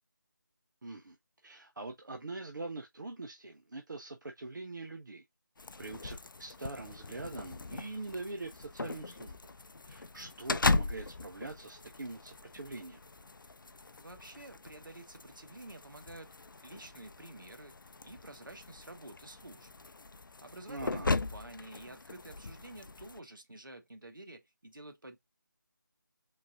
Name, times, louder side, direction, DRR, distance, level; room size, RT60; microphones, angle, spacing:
voice 1, 0.8-1.2 1.4-5.2 5.8-9.4 9.8-13.0 20.7-21.1, right 2 dB, 70° right, 0.7 m, -43 dB
sound 1, 5.6-23.2, left 3 dB, 85° left, 0.4 m, -38 dB
voice 2, 14.0-19.7 20.4-25.2, right 1 dB, 90° right, 1.2 m, -50 dB
3.9 x 3.6 x 2.6 m
figure-of-eight pair, 160°, 11 cm